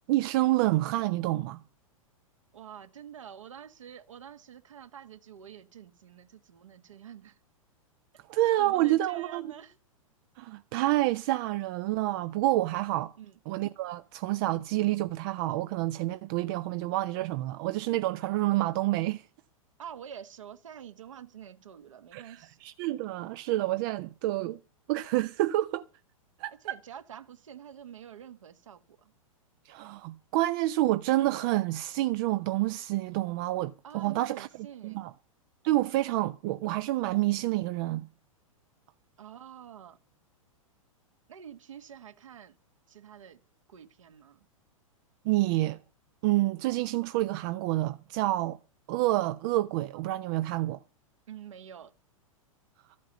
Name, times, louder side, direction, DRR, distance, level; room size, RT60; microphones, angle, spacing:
voice 1, 0.1-1.6 8.3-9.5 10.4-13.1 13.5-19.2 22.1-24.6 24.9-25.8 26.4-26.8 29.7-34.5 34.8-35.1 35.6-38.1 45.2-45.8 46.2-48.6 48.9-50.8, right 16 dB, 40° right, 0.7 m, -28 dB
voice 2, 2.5-7.4 8.6-9.8 13.2-13.4 19.8-22.6 26.5-29.1 33.8-35.0 39.2-40.0 41.3-42.6 42.9-43.4 43.7-44.4 51.3-51.9, right 9 dB, 65° right, 1.6 m, -47 dB
14.0 x 8.5 x 7.9 m
figure-of-eight pair, 100°, 18 cm